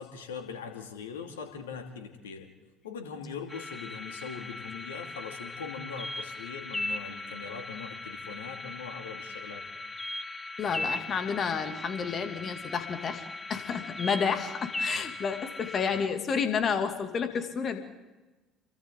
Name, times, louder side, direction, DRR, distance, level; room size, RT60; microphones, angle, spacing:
voice 1, 0.0-2.5 2.8-9.6, left 6 dB, 75° left, 6 dB, 2.4 m, -41 dB
sound 1, 3.5-16.1, left 2 dB, 15° left, 1.1 m, -38 dB
voice 2, 10.6-17.8, left 6 dB, 40° left, 7 dB, 2.6 m, -30 dB
30.0 x 23.0 x 3.9 m, 1.2 s
figure-of-eight pair, 55°, 0 cm